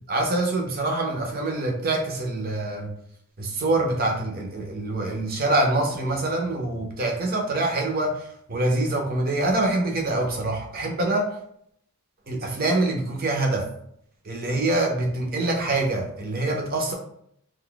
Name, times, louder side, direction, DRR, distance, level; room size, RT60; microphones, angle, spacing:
voice 1, 0.1-2.9 3.4-8.2 8.5-11.3 12.3-13.6 14.3-16.9, right 2 dB, 45° right, 2 dB, 0.7 m, -25 dB
2.5 x 2.3 x 3.8 m, 0.70 s
head